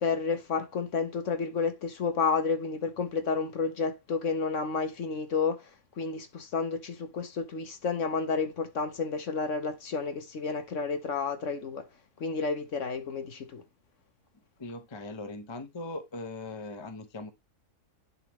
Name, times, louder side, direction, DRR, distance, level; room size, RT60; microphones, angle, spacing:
voice 1, 0.0-5.7 6.0-11.8 12.2-13.6, left 5 dB, 55° left, 1.2 m, -31 dB
voice 2, 14.6-17.3, left 2 dB, 25° left, 0.7 m, -40 dB
11.0 x 3.6 x 3.0 m
omnidirectional pair, 1.7 m